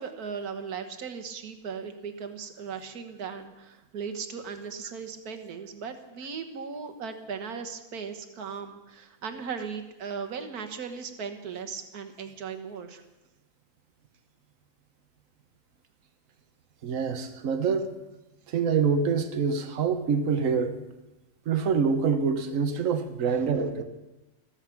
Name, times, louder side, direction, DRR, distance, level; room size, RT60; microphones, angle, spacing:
voice 1, 0.0-13.0 23.3-23.5, right 6 dB, 85° right, 1.8 m, -37 dB
voice 2, 16.8-17.9 18.5-20.8 21.5-23.8, right 5 dB, 65° right, 1.4 m, -26 dB
14.5 x 14.0 x 5.9 m
omnidirectional pair, 1.6 m